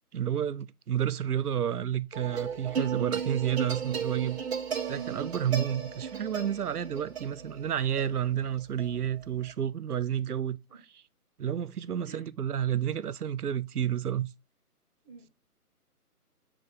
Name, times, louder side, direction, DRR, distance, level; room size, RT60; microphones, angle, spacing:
voice 1, 0.1-4.4 4.9-10.6 11.4-14.3, right 9 dB, 75° right, 0.7 m, -30 dB
sound 1, 2.1-9.5, right 7 dB, 45° right, 1.4 m, -35 dB
voice 2, 4.9-5.4 6.5-6.6 10.7-10.8 12.0-12.3 15.0-15.3, right 8 dB, 5° left, 0.9 m, -45 dB
7.5 x 3.4 x 3.8 m
figure-of-eight pair, 155°, 46 cm